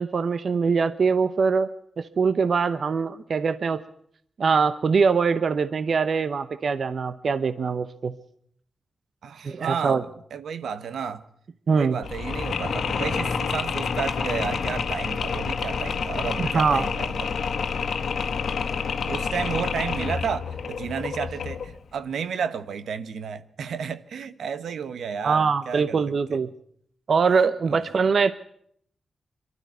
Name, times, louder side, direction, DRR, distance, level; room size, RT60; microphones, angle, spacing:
voice 1, 0.0-1.7 2.0-3.8 4.4-8.1 9.4-10.0 11.7-12.0 16.4-16.9 25.2-26.5 27.1-28.3, right 5 dB, 60° right, 0.8 m, -23 dB
voice 2, 9.2-11.2 11.8-17.3 19.0-26.4 27.7-27.9, right 7 dB, 85° right, 1.1 m, -32 dB
Mechanisms, 12.0-21.8, left 5 dB, 75° left, 1.5 m, -28 dB
23.0 x 13.0 x 9.3 m
cardioid pair, 75°, 0 cm